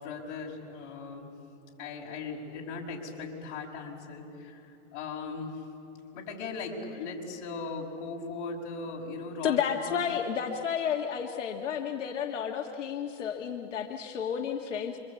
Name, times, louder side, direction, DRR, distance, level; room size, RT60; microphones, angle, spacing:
voice 1, 0.0-1.3 1.8-5.6 6.1-10.2, left 4 dB, 45° left, 0 dB, 5.5 m, -38 dB
voice 2, 9.4-15.0, left 8 dB, 85° left, 2 dB, 1.8 m, -31 dB
28.5 x 24.5 x 8.4 m, 2.7 s
hypercardioid pair, 150°, 36 cm